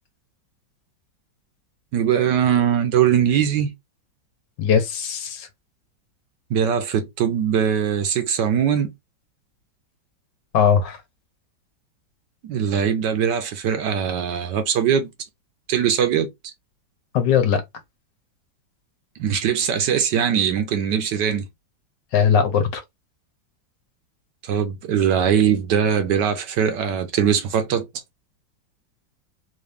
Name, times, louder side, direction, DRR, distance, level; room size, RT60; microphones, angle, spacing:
voice 1, 1.9-3.7 6.5-8.9 12.4-15.1 15.7-16.3 19.2-21.5 24.4-27.9, right 8 dB, 70° right, 1.2 m, -21 dB
voice 2, 4.6-5.5 10.5-11.0 17.1-17.6 22.1-22.8, left 7 dB, 70° left, 1.4 m, -19 dB
3.9 x 2.7 x 3.4 m
omnidirectional pair, 2.1 m